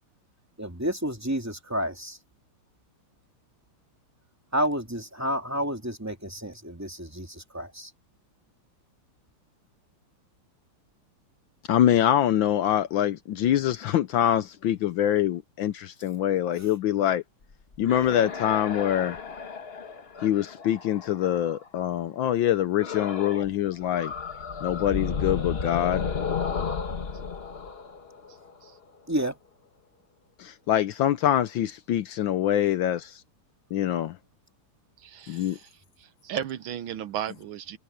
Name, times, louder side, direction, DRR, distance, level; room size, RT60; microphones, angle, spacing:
voice 1, 0.6-2.2 4.5-7.9 16.6-16.7 29.1-29.4, equal, 5° right, 2.4 m, -30 dB
voice 2, 11.7-17.2 17.8-19.2 20.2-24.1 24.6-26.1 30.4-33.2 33.7-34.2 35.3-35.6, left 11 dB, 70° left, 1.3 m, -24 dB
sound 1, 17.5-21.7 22.8-23.5 23.8-28.7, left 5 dB, 35° left, 1.2 m, -33 dB
voice 3, 35.0-35.7 36.0-37.8, right 9 dB, 75° right, 1.5 m, -35 dB
omnidirectional pair, 2.4 m